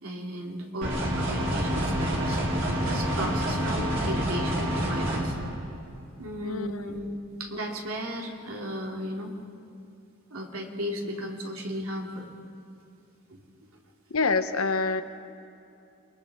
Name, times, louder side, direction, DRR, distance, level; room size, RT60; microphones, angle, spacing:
voice 1, 0.0-2.4 2.8-5.4 6.2-7.1 7.4-9.4 10.3-12.2 13.3-13.4, equal, 75° right, 0 dB, 2.9 m, -35 dB
sound 1, 0.8-5.2, equal, 60° right, 4.7 m, -27 dB
voice 2, 6.4-6.8 14.1-15.0, left 4 dB, 80° left, 8 dB, 1.0 m, -26 dB
29.0 x 21.0 x 4.9 m, 2.6 s
head